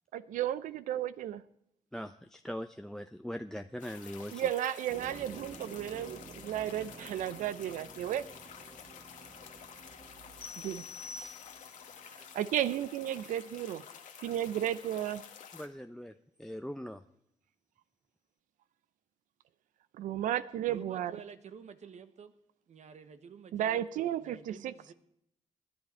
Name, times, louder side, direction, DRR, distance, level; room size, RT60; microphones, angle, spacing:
voice 1, 0.1-1.4 4.3-8.2 10.6-10.8 12.3-13.8 14.2-15.2 19.9-21.1 23.5-24.7, right 11 dB, 85° right, 15 dB, 0.6 m, -33 dB
voice 2, 1.9-4.5 15.5-16.1 16.4-17.0, equal, 5° left, 8 dB, 0.7 m, -41 dB
sound 1, 3.8-15.7, left 8 dB, 75° left, 1.5 m, -50 dB
sound 2, 4.9-13.0, right 4 dB, 35° right, 1.1 m, -53 dB
sound 3, 10.4-11.9, left 4 dB, 45° left, 1.4 m, -46 dB
voice 3, 20.7-22.3 22.7-24.9, right 6 dB, 60° right, 10 dB, 1.3 m, -50 dB
20.5 x 11.0 x 4.5 m, 0.75 s
supercardioid pair, 60°, 13 cm